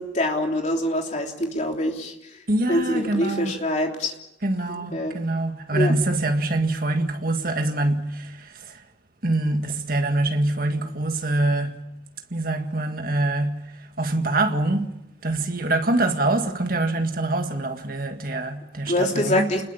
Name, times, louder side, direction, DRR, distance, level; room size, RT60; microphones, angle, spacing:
voice 1, 0.0-2.1 2.7-4.2 4.7-5.2 5.7-5.9 18.9-19.6, left 1 dB, 40° left, 3.3 m, -25 dB
voice 2, 2.5-3.5 4.4-8.8 9.2-11.9 12.3-19.5, right 2 dB, 50° right, 1.9 m, -25 dB
29.5 x 20.5 x 7.1 m
head